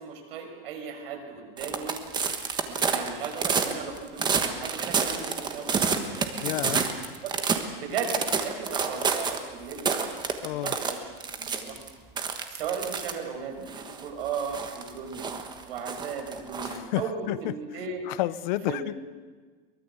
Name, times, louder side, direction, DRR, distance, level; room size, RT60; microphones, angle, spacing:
voice 1, 0.0-2.0 2.7-6.2 7.2-7.3 7.8-10.1 10.5-11.0 11.3-11.8 12.5-15.3 15.6-18.1 18.7-19.0, right 6 dB, 70° right, 3 dB, 5.9 m, -36 dB
sound 1, 1.6-7.7 7.9-9.4 9.7-11.9 12.2-13.1 13.7-16.8, right 5 dB, 15° right, 1.3 m, -29 dB
voice 2, 6.4-6.9 10.4-10.8 16.6-17.5 18.0-18.9, left 16 dB, 50° left, 17 dB, 0.7 m, -30 dB
23.0 x 20.5 x 8.1 m, 1.5 s
supercardioid pair, 165°, 30 cm